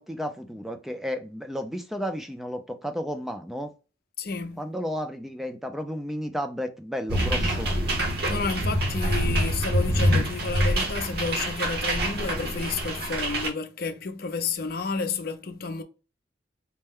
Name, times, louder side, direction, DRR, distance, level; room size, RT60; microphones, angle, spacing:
voice 1, 0.0-3.7 4.6-7.7, equal, ahead, 0.4 m, -32 dB
voice 2, 4.2-4.6 8.3-15.8, left 4 dB, 55° left, 0.6 m, -31 dB
sound 1, 7.1-13.5, right 1 dB, 55° right, 1.0 m, -26 dB
4.3 x 2.2 x 3.5 m
head